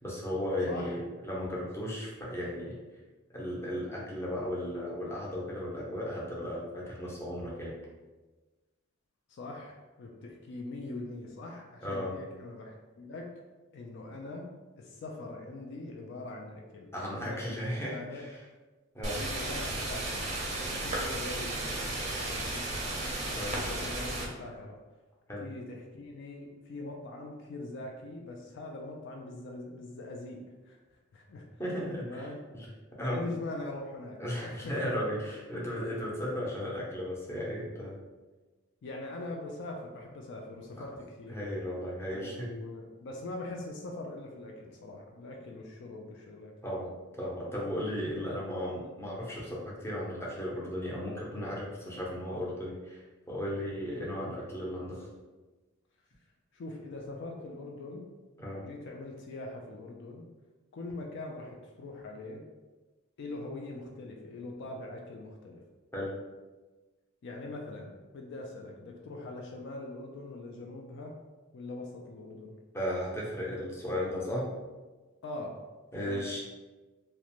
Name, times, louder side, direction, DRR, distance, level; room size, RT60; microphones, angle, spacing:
voice 1, 0.0-2.7 3.3-7.7 11.8-12.1 16.9-18.4 18.9-19.2 23.3-23.5 25.3-25.5 31.6-32.3 32.5-32.7 33.0-33.2 34.2-38.0 40.8-40.9 41.3-42.5 46.6-55.1 58.4-58.6 65.9-66.1 72.7-74.5 75.9-76.4, equal, 15° left, -5 dB, 0.6 m, -35 dB
voice 2, 9.3-13.3 13.7-14.4 14.8-18.2 19.1-23.0 23.5-24.8 25.4-30.8 31.1-31.6 32.0-32.4 33.0-34.9 38.8-41.4 42.1-46.5 56.5-58.1 58.6-60.3 60.7-62.4 63.2-65.6 67.2-71.1 71.5-72.6 75.2-75.6 76.0-76.4, left 2 dB, 60° left, 1 dB, 0.3 m, -42 dB
sound 1, 19.0-24.3, right 2 dB, 35° right, 0.5 m, -34 dB
2.4 x 2.1 x 2.9 m, 1.2 s
head